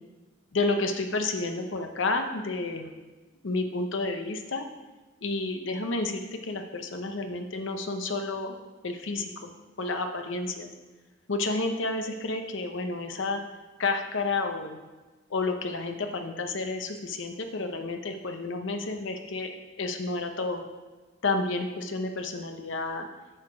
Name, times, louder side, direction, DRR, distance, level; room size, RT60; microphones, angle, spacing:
voice 1, 0.5-2.9 3.4-4.7 5.2-8.6 8.8-9.5 9.8-10.7 11.3-13.4 13.8-14.8 15.3-19.5 19.8-20.6 21.2-23.1, left 3 dB, 75° left, 5 dB, 0.7 m, -30 dB
10.0 x 6.7 x 4.9 m, 1.2 s
head